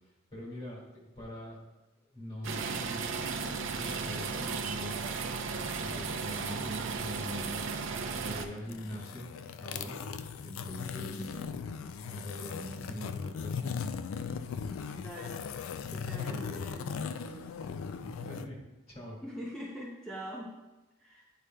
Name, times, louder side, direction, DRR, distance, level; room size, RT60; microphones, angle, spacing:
voice 1, 0.3-1.7 2.1-5.1 5.8-7.6 8.2-9.3 9.6-10.0 10.4-11.3 12.0-13.8 16.3-16.6 18.0-18.6 18.9-19.2, left 1 dB, 30° left, -3 dB, 1.9 m, -43 dB
sound 1, 2.4-8.5, right 5 dB, 60° right, 0.5 m, -35 dB
sound 2, 8.6-18.5, left 6 dB, 70° left, 0.3 m, -38 dB
voice 2, 11.0-11.5 14.9-15.4 15.9-17.4 19.2-20.5 21.0-21.3, equal, 5° left, -5 dB, 0.5 m, -43 dB
9.7 x 4.9 x 2.2 m, 1.0 s
head